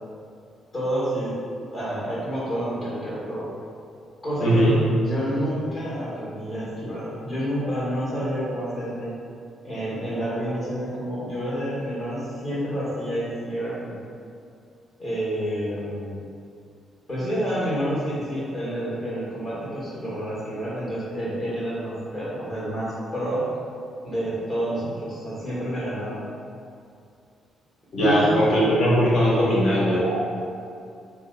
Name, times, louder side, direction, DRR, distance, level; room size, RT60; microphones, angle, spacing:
voice 1, 0.7-1.3 1.7-3.5 4.2-4.7 5.0-9.1 9.6-14.0 15.0-16.2 17.1-23.5 24.0-26.2 28.0-28.4 30.0-30.1, equal, 30° left, -9 dB, 1.4 m, -29 dB
voice 2, 4.4-4.8 27.9-30.0, equal, 60° left, -7 dB, 1.0 m, -19 dB
2.7 x 2.2 x 3.7 m, 2.4 s
cardioid pair, 90°, 0 cm